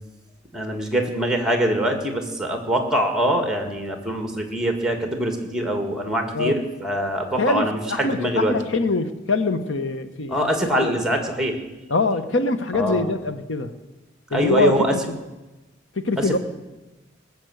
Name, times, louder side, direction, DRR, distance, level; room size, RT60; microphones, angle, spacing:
voice 1, 0.5-8.6 10.3-11.6 12.7-13.1 14.3-14.9 16.2-16.4, right 1 dB, 5° right, 5 dB, 2.0 m, -23 dB
voice 2, 7.4-11.0 11.9-13.7 14.3-15.0 16.0-16.4, left 3 dB, 70° left, 10 dB, 1.0 m, -24 dB
19.5 x 7.2 x 7.9 m, 1.1 s
head